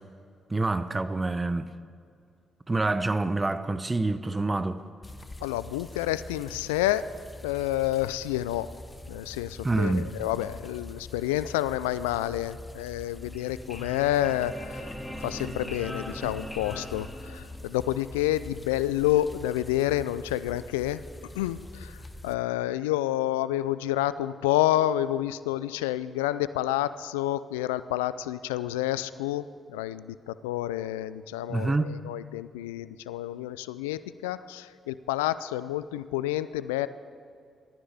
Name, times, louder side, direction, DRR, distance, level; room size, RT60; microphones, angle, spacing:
voice 1, 0.5-1.7 2.7-4.8 9.6-10.1 31.5-31.9, right 2 dB, 25° right, 0.9 m, -27 dB
sound 1, 5.0-22.3, left 2 dB, 25° left, 1.1 m, -45 dB
voice 2, 5.4-7.0 7.4-8.7 9.1-14.9 15.2-21.0 21.3-36.9, left 14 dB, 85° left, 0.3 m, -29 dB
sound 2, 13.2-17.9, equal, 5° left, 3.0 m, -40 dB
20.5 x 13.0 x 3.5 m
hypercardioid pair, 40°, 0 cm